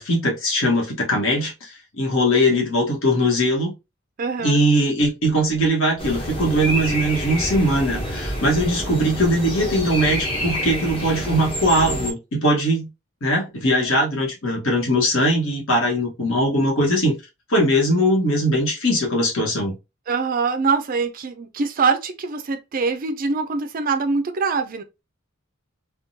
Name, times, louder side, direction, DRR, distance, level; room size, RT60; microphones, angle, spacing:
voice 1, 0.0-3.7 4.4-12.9 13.2-17.2 17.5-19.7, equal, 65° left, 1.3 m, -20 dB
voice 2, 4.2-4.6 20.1-24.8, right 4 dB, 40° right, 0.4 m, -23 dB
sound 1, 6.0-12.1, equal, 25° left, 0.8 m, -28 dB
3.6 x 2.2 x 2.7 m
head